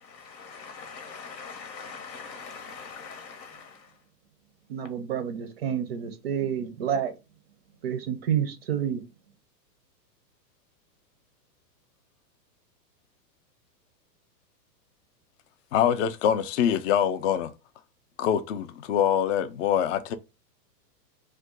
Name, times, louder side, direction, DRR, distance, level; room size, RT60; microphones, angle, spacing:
voice 1, 0.0-3.9, left 5 dB, 85° left, 1.1 m, -42 dB
voice 2, 4.7-7.1 7.8-9.0, right 9 dB, 40° right, 0.4 m, -29 dB
voice 3, 15.7-17.5 18.2-20.2, left 9 dB, 50° left, 0.4 m, -24 dB
2.5 x 2.3 x 3.6 m
hypercardioid pair, 135°, 50 cm